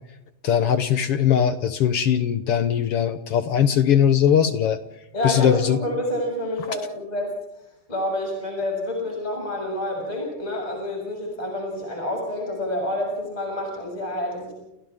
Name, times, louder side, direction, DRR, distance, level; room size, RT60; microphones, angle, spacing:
voice 1, 0.4-4.8 5.2-5.8, left 9 dB, 70° left, 11 dB, 1.4 m, -20 dB
voice 2, 5.1-7.3 7.9-14.5, left 1 dB, 10° left, -1 dB, 6.8 m, -28 dB
29.5 x 29.5 x 3.6 m, 0.87 s
omnidirectional pair, 3.8 m